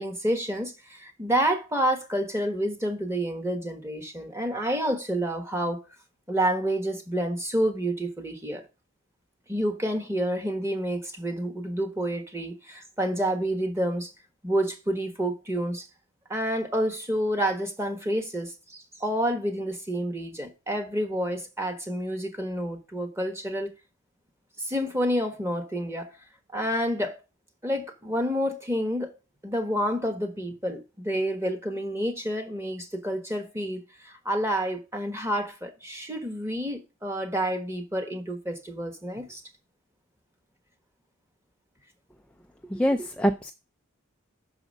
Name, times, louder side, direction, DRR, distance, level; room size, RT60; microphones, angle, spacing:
voice 1, 0.0-5.8 6.3-8.6 9.5-14.1 14.4-15.9 16.3-23.7 24.6-26.1 26.5-27.2 27.6-29.1 29.4-39.4, equal, 15° right, 1.3 m, -29 dB
voice 2, 42.7-43.5, equal, 5° left, 0.3 m, -24 dB
6.3 x 4.9 x 6.3 m
head